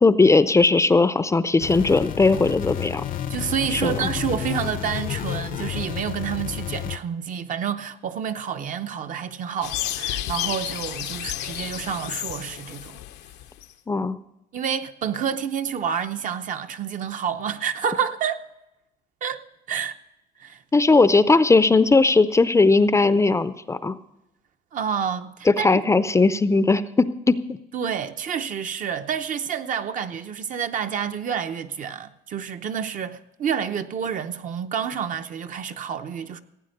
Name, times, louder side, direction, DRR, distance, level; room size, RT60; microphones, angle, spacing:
voice 1, 0.0-3.0 3.7-4.1 13.9-14.2 20.7-24.0 25.5-27.6, left 3 dB, 15° left, 0.5 m, -18 dB
sound 1, 1.6-7.0, left 11 dB, 55° left, 0.6 m, -31 dB
voice 2, 3.3-13.0 14.5-18.4 19.2-19.4 19.7-19.9 20.4-20.6 24.7-25.8 27.7-36.4, right 7 dB, 50° right, 0.8 m, -29 dB
sound 2, 9.6-13.7, left 13 dB, 90° left, 0.8 m, -31 dB
16.0 x 9.0 x 6.6 m
cardioid pair, 110°, 17 cm